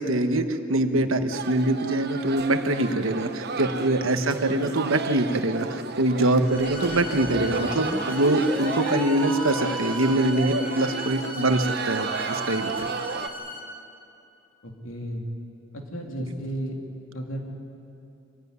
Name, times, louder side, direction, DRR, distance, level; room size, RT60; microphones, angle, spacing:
voice 1, 0.0-12.9, right 1 dB, 80° right, 8 dB, 1.3 m, -24 dB
sound 1, 1.3-13.3, right 4 dB, 55° right, 1.0 m, -33 dB
sound 2, 6.4-13.6, equal, 40° left, 4.1 m, -38 dB
sound 3, 6.5-10.4, right 1 dB, 5° left, 0.9 m, -36 dB
voice 2, 14.6-15.3 15.7-16.8 17.1-17.4, right 1 dB, 80° left, 1 dB, 3.2 m, -33 dB
25.0 x 15.0 x 9.8 m, 2.7 s
head